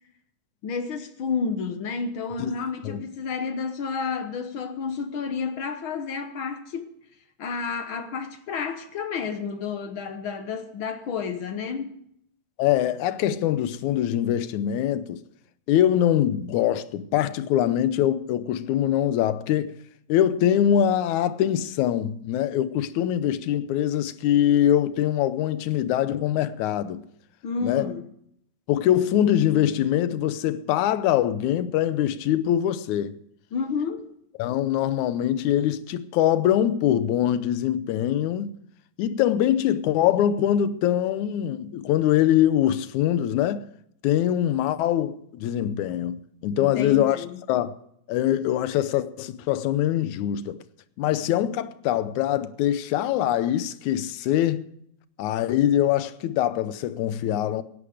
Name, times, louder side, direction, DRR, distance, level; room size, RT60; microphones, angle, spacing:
voice 1, 0.6-6.9 7.4-11.9 27.4-28.0 33.5-34.1 46.6-47.4, left 5 dB, 60° left, 1.4 m, -30 dB
voice 2, 12.6-15.2 15.7-19.8 20.1-27.0 27.6-27.9 28.7-33.2 34.4-38.5 39.0-43.6 44.0-47.7 48.1-50.6 51.0-54.6 55.2-57.6, left 11 dB, 80° left, 2.1 m, -23 dB
17.0 x 11.5 x 5.0 m
omnidirectional pair, 3.4 m